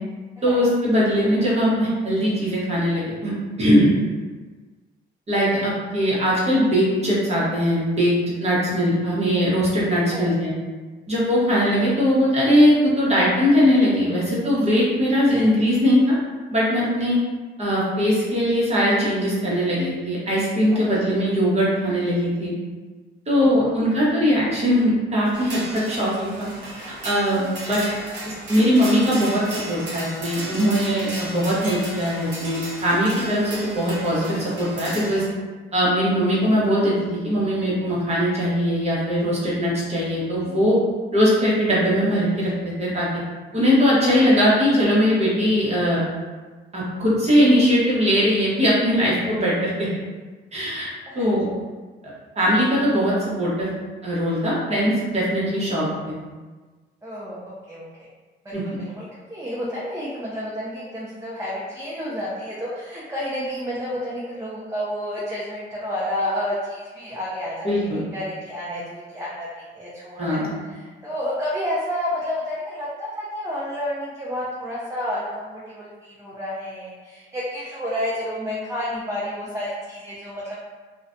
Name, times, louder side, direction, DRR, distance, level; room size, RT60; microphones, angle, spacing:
voice 1, 0.4-3.3 3.6-3.9 5.3-8.1 8.4-10.5 11.1-16.1 16.5-17.2 17.6-22.5 23.3-26.5 26.7-27.8 28.2-35.2 35.7-40.8 41.1-42.5 42.8-43.1 43.5-46.0 46.7-49.9 50.5-51.5 52.4-53.7 54.0-56.2 58.5-58.6 67.6-68.0 70.2-70.6, equal, 35° right, -6 dB, 0.9 m, -20 dB
voice 2, 23.3-23.8 27.3-27.5 51.0-51.3 57.0-58.1 58.4-80.6, equal, 15° right, -8 dB, 0.5 m, -30 dB
sound 1, 25.3-35.3, right 1 dB, 65° right, 0.8 m, -35 dB
2.4 x 2.1 x 2.5 m, 1.3 s
cardioid pair, 90°, 20 cm